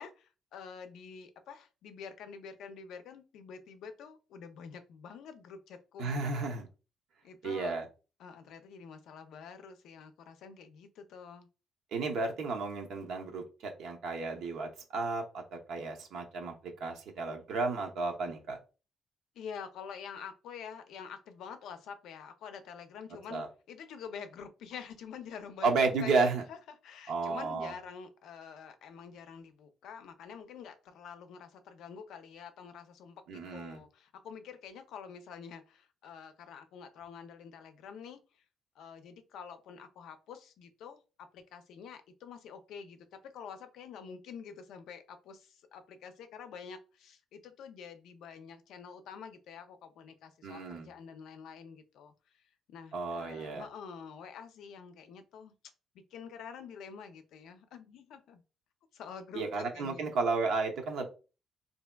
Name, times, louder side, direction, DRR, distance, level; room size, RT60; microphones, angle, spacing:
voice 1, 0.0-6.5 7.2-7.8 8.2-11.5 19.4-25.7 26.0-26.2 26.5-26.6 26.8-38.2 38.8-41.0 41.3-52.4 52.7-55.5 56.1-58.4 58.9-59.4 59.7-60.2, left 6 dB, 80° left, 8 dB, 0.5 m, -47 dB
voice 2, 6.0-6.7 7.4-7.9 11.9-16.5 16.8-18.6 23.3-23.5 25.6-26.4 27.1-27.7 33.3-33.8 50.4-50.9 52.9-53.6 59.3-61.0, right 4 dB, 75° right, 2 dB, 0.8 m, -32 dB
3.3 x 2.7 x 2.2 m, 0.32 s
cardioid pair, 110°, 0 cm